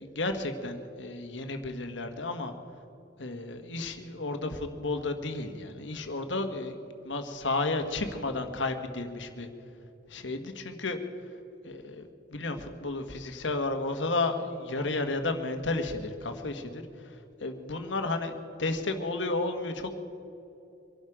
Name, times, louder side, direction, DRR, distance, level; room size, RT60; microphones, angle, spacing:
voice 1, 0.0-2.5 3.2-9.5 10.1-11.0 11.6-16.8 17.4-18.3 18.6-19.9, left 2 dB, 80° left, 6 dB, 1.5 m, -32 dB
24.5 x 11.5 x 5.0 m, 2.8 s
head